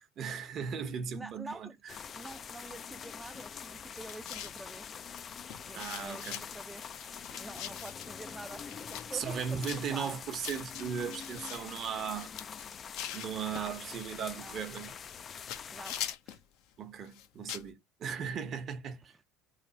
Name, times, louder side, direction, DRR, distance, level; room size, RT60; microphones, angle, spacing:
voice 1, 0.0-2.0 5.7-6.4 9.1-12.3 13.1-14.9 16.8-19.2, right 7 dB, 45° right, 0.9 m, -37 dB
voice 2, 1.1-1.8 2.2-5.0 5.7-6.9 7.3-10.2 13.5-13.7 14.3-14.6 15.7-16.0 16.3-16.4, right 2 dB, 10° right, 0.5 m, -47 dB
sound 1, 1.9-16.1, left 7 dB, 40° left, 0.4 m, -45 dB
sound 2, 4.1-4.6 5.1-5.2 5.5-6.4 6.9-8.1 8.7-9.1 9.3-9.8 10.4-11.6 12.1-13.7 14.6-15.2 15.5-16.4 17.1-17.7, left 10 dB, 65° left, 0.7 m, -42 dB
3.3 x 2.4 x 3.9 m
hypercardioid pair, 75°, 0 cm